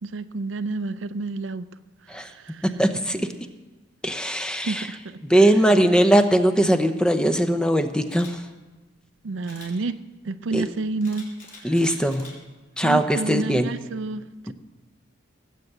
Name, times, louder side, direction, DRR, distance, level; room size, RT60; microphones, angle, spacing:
voice 1, 0.0-1.7 2.1-2.6 4.6-5.5 9.2-10.0 10.2-11.3 11.6-11.7 12.8-14.5, right 3 dB, 75° right, 13 dB, 0.5 m, -30 dB
voice 2, 2.6-3.3 4.0-4.9 5.3-8.4 10.5-10.6 11.6-12.3 12.8-13.7 14.5-14.6, right 1 dB, 5° left, 8 dB, 0.7 m, -20 dB
Camera, 8.1-8.3 9.4-9.7 11.0-12.3 12.8-13.1, left 4 dB, 50° left, 4.0 m, -45 dB
18.0 x 7.4 x 8.0 m, 1.2 s
head